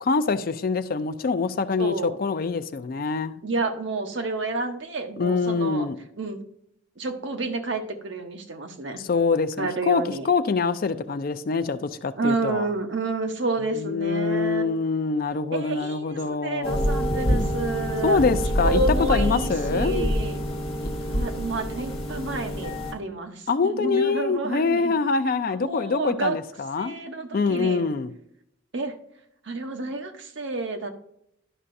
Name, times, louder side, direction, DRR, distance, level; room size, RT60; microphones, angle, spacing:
voice 1, 0.0-3.4 5.2-6.0 9.0-12.7 13.7-16.9 18.0-20.1 20.8-20.9 23.5-26.9 27.3-28.1, left 4 dB, 45° left, 0.4 m, -25 dB
voice 2, 1.8-2.2 3.4-5.9 6.2-6.4 7.0-9.0 9.6-10.3 12.2-14.7 15.5-18.2 18.6-20.4 21.1-24.9 25.5-26.4 26.8-27.8 28.7-28.9 29.4-30.9, right 3 dB, 60° right, 0.8 m, -30 dB
sound 1, 16.6-22.9, equal, 30° left, 1.1 m, -26 dB
11.0 x 5.5 x 2.6 m
head